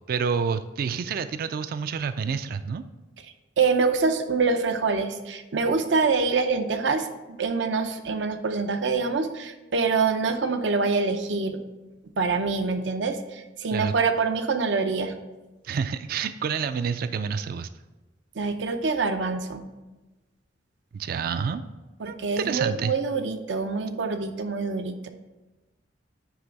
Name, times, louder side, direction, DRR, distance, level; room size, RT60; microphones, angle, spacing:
voice 1, 0.1-2.8 13.7-13.9 15.6-17.7 20.9-21.6 22.1-23.0, right 6 dB, 55° right, 11 dB, 0.3 m, -28 dB
voice 2, 3.6-11.6 12.2-15.1 18.4-19.7 22.0-25.1, right 4 dB, 85° right, 8 dB, 0.6 m, -25 dB
9.6 x 3.4 x 5.2 m, 1.1 s
head